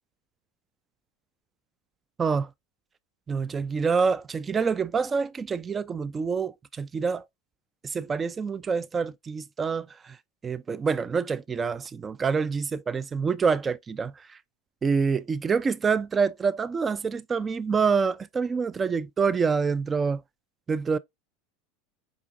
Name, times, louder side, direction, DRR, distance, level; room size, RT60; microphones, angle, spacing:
voice 1, 2.2-2.5 3.3-7.2 7.8-10.2 10.4-14.4 14.8-20.2 20.7-21.0, right 5 dB, 25° right, 0.3 m, -26 dB
5.0 x 2.4 x 3.6 m
hypercardioid pair, 85°, 0 cm